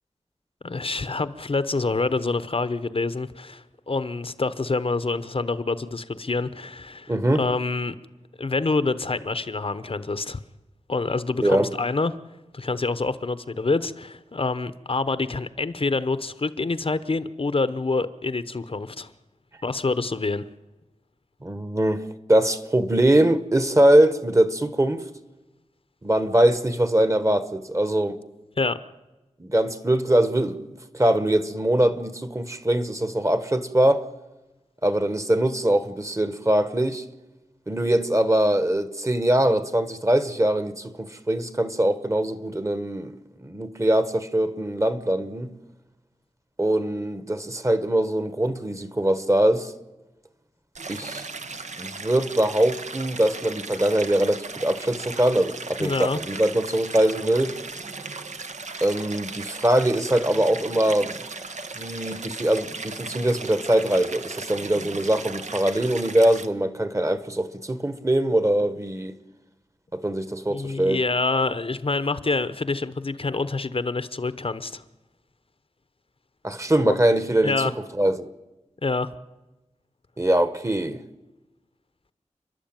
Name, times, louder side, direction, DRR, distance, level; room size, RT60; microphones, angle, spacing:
voice 1, 0.6-7.9 8.4-10.4 10.9-12.1 12.5-19.1 19.6-20.4 28.6-28.8 55.8-56.2 70.1-70.2 70.5-74.8 76.8-76.9 77.4-77.7 78.8-79.1, left 3 dB, 50° left, 0.9 m, -26 dB
voice 2, 7.1-7.4 11.4-11.7 21.4-25.0 26.0-28.2 29.4-30.6 30.9-34.0 34.8-37.0 37.7-43.1 43.4-45.5 46.6-49.7 50.9-51.3 51.8-57.5 58.8-61.2 61.7-69.2 69.9-71.0 76.4-77.6 78.0-78.3 80.2-81.0, right 1 dB, 25° right, 1.3 m, -22 dB
Stream, 50.8-66.5, right 4 dB, 70° right, 1.3 m, -37 dB
29.5 x 11.5 x 9.0 m
wide cardioid pair, 85°, 12 cm